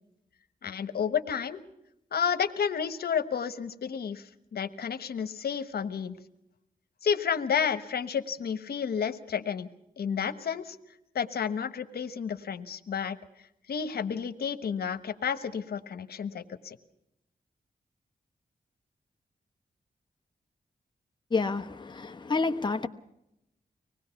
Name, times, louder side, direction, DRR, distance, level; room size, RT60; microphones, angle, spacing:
voice 1, 0.6-1.6 2.1-6.1 7.0-9.7 10.0-10.8 11.1-13.2 13.7-16.8, left 7 dB, 90° left, 1.2 m, -31 dB
voice 2, 21.3-22.9, left 4 dB, 30° left, 1.1 m, -29 dB
25.0 x 19.5 x 5.9 m
wide cardioid pair, 110°, 16 cm